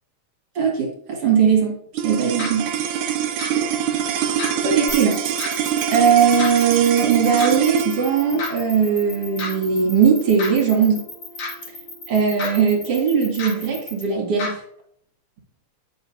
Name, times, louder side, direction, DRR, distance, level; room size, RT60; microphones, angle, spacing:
voice 1, 0.6-1.8 2.0-2.7 4.6-5.2 5.9-11.0 12.1-14.6, right 6 dB, 55° right, 0 dB, 2.7 m, -19 dB
sound 1, 1.9-12.4, right 9 dB, 90° right, 2.1 m, -26 dB
sound 2, 2.4-2.5 3.4-3.5 4.4-4.5 5.4-5.5 6.4-6.5 7.4-7.5 8.4-8.5 9.4-9.5 10.4-10.5 11.4-11.5 12.4-12.5 13.4-13.5 14.4-14.5, left 3 dB, 80° left, 3.6 m, -28 dB
sound 3, 4.9-14.0, left 4 dB, 50° left, 2.6 m, -36 dB
9.5 x 7.0 x 2.7 m, 0.68 s
omnidirectional pair, 3.4 m